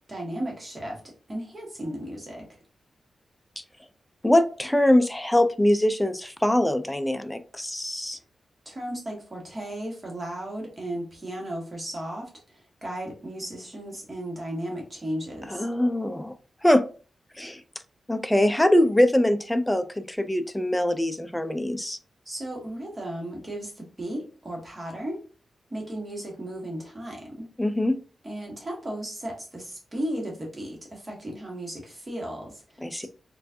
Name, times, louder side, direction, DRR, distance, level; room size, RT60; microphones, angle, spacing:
voice 1, 0.1-2.5 8.6-15.7 22.2-25.2 25.7-27.5 28.2-33.1, right 1 dB, 20° right, -1 dB, 1.2 m, -35 dB
voice 2, 4.2-8.2 15.5-16.3 16.6-16.8 17.4-17.6 18.1-22.0 27.6-27.9 32.8-33.1, left 1 dB, 5° left, 9 dB, 0.4 m, -23 dB
4.5 x 2.4 x 2.6 m, 0.37 s
wide cardioid pair, 160°, 0 cm